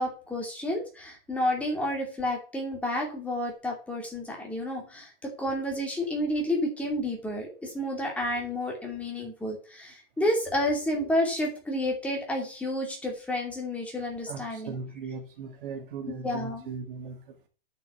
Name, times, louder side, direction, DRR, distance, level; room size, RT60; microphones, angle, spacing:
voice 1, 0.0-14.8 16.2-16.7, left 1 dB, 5° left, 2.5 m, -30 dB
voice 2, 14.3-17.5, right 4 dB, 60° right, 2.3 m, -38 dB
9.1 x 6.0 x 6.9 m
supercardioid pair, 175°, 30 cm